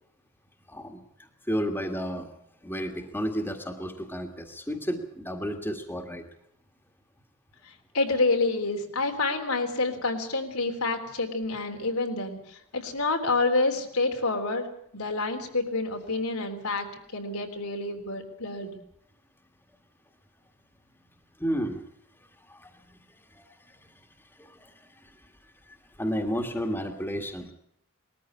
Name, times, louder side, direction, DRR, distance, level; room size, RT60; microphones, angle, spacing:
voice 1, 0.7-2.3 2.6-6.3 21.4-21.8 22.4-27.5, equal, 10° left, 4 dB, 1.8 m, -33 dB
voice 2, 7.6-14.7 14.9-16.9 17.1-18.8, left 3 dB, 85° left, 3 dB, 3.5 m, -28 dB
20.5 x 14.0 x 9.9 m, 0.73 s
head